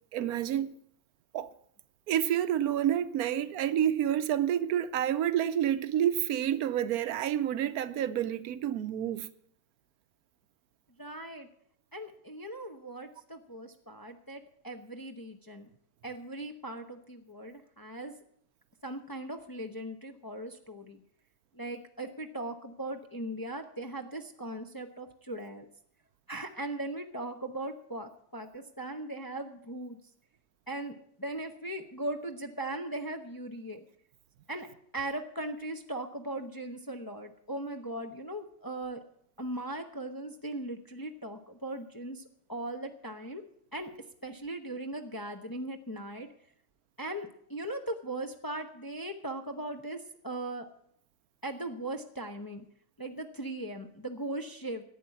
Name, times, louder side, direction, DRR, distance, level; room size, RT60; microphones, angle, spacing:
voice 1, 0.1-0.8 1.3-1.5 2.1-9.3, right 10 dB, 80° right, 1.2 m, -29 dB
voice 2, 11.0-11.5 11.9-15.7 16.0-18.1 18.8-21.0 21.5-25.7 26.3-30.0 30.7-33.8 34.5-34.7 34.9-39.0 39.4-42.2 42.5-43.4 43.7-43.9 44.2-46.3 47.0-50.7 51.4-52.6 53.0-54.8, right 1 dB, 20° left, 0.6 m, -39 dB
11.0 x 9.0 x 8.3 m
omnidirectional pair, 1.6 m